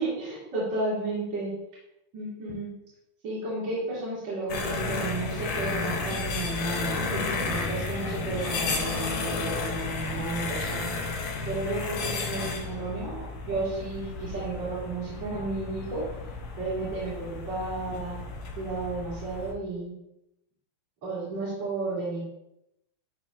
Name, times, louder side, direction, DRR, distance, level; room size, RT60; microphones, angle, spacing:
voice 1, 0.0-1.5 2.1-2.7 3.2-10.9 11.5-16.0 16.6-18.2 18.6-19.9 21.0-22.2, right 2 dB, 55° right, -11 dB, 4.1 m, -32 dB
sound 1, 4.5-19.5, left 3 dB, 70° left, 2.4 m, -32 dB
12.5 x 4.2 x 2.6 m, 0.84 s
omnidirectional pair, 3.6 m